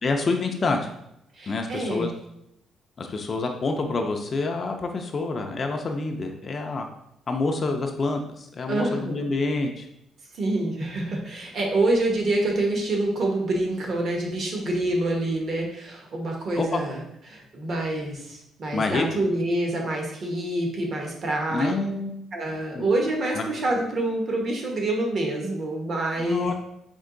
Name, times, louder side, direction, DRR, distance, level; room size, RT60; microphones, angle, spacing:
voice 1, 0.0-0.9 1.5-2.1 3.0-6.9 7.3-9.9 16.6-16.8 18.7-19.0 21.5-22.2 22.7-22.9 23.4-23.5 26.2-26.5, left 3 dB, 30° left, 4 dB, 0.4 m, -27 dB
voice 2, 1.3-2.1 8.7-9.3 10.3-21.7 22.3-26.5, right 2 dB, 45° right, 0 dB, 1.0 m, -26 dB
4.4 x 3.0 x 3.7 m, 0.80 s
cardioid pair, 150°, 0 cm